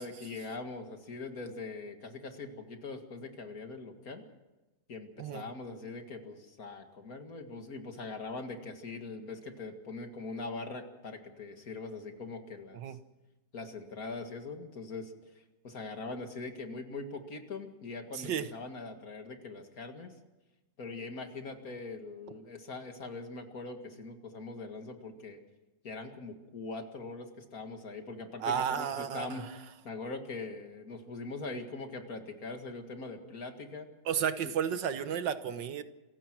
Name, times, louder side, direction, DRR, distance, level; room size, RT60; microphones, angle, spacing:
voice 1, 0.0-4.2 4.9-13.0 13.5-20.1 20.8-25.4 25.8-29.5 29.8-33.9, left 3 dB, 50° left, 6 dB, 2.4 m, -42 dB
voice 2, 18.1-18.5 28.4-29.5 34.1-35.8, right 8 dB, 75° right, 11 dB, 1.8 m, -32 dB
28.0 x 16.0 x 6.2 m, 1.1 s
omnidirectional pair, 2.0 m